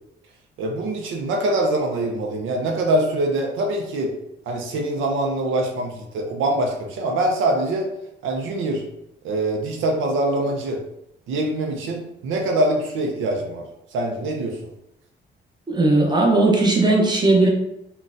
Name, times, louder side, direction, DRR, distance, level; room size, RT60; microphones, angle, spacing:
voice 1, 0.6-4.1 4.5-7.9 8.2-8.8 9.2-10.8 11.3-14.6, right 1 dB, 80° right, 2 dB, 0.6 m, -24 dB
voice 2, 15.7-17.5, right 2 dB, 20° right, 0 dB, 0.8 m, -17 dB
3.8 x 2.3 x 2.5 m, 0.83 s
cardioid pair, 90°, 20 cm